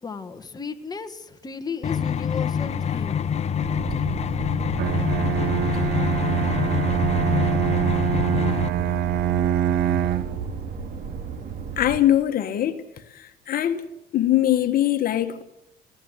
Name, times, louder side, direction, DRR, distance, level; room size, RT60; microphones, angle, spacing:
voice 1, 0.0-3.2, left 5 dB, 25° left, 1.7 m, -34 dB
sound 1, 1.8-8.7, left 7 dB, 40° left, 1.0 m, -26 dB
sound 2, 3.6-12.0, right 6 dB, 55° right, 4.4 m, -34 dB
Bowed string instrument, 4.8-10.5, right 10 dB, 75° right, 1.3 m, -24 dB
voice 2, 11.8-12.8 13.1-13.8 14.1-15.4, left 12 dB, 60° left, 1.5 m, -22 dB
21.0 x 17.0 x 9.4 m
cardioid pair, 110°, 17 cm